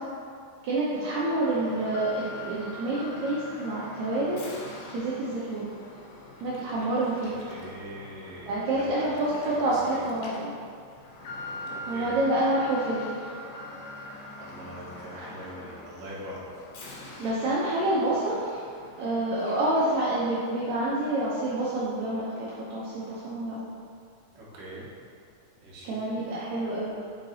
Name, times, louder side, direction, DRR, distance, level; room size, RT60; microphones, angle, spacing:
voice 1, 0.6-4.4 4.9-5.7 6.4-7.4 8.5-10.5 11.9-13.1 17.2-18.6 19.0-23.6 25.8-26.9, right 1 dB, 80° right, -8 dB, 1.6 m, -28 dB
Alarm, 1.4-20.1 20.4-20.5 21.2-21.3, left 2 dB, 80° left, 2.9 m, -43 dB
voice 2, 7.5-9.0 9.4-10.0 11.9-12.1 14.4-16.7 24.3-24.9 25.6-26.0, equal, 60° right, -6 dB, 1.6 m, -42 dB
5.8 x 4.5 x 4.0 m, 2.3 s
omnidirectional pair, 4.3 m